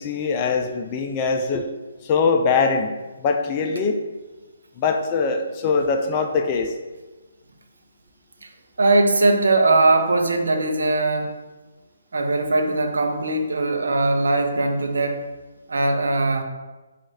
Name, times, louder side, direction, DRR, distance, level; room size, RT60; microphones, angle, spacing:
voice 1, 0.0-1.7 2.0-3.0 3.2-4.0 4.8-6.7, left 4 dB, 30° left, 4 dB, 0.4 m, -22 dB
voice 2, 8.8-11.3 12.1-15.2 15.7-16.4, right 2 dB, 70° right, 4 dB, 0.6 m, -20 dB
4.6 x 2.5 x 4.1 m, 1.2 s
figure-of-eight pair, 140°, 0 cm